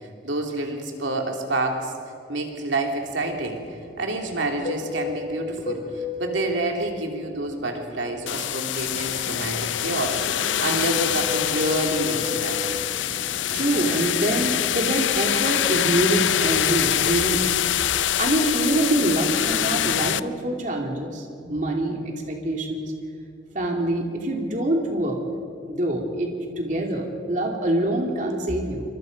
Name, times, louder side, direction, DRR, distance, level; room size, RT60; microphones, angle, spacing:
voice 1, 0.2-1.9 2.3-3.6 4.0-12.8, right 2 dB, 85° right, 2 dB, 2.8 m, -28 dB
Fixed-wing aircraft airplane, 3.0-8.4 8.8-14.6, left 3 dB, 50° left, 4.0 m, -35 dB
sound 1, 8.3-20.2, left 11 dB, 85° left, 0.5 m, -24 dB
voice 2, 13.5-17.5 18.2-22.9 23.5-25.2 25.7-28.8, right 1 dB, 45° right, 1 dB, 2.8 m, -25 dB
27.0 x 25.0 x 5.3 m, 2.4 s
head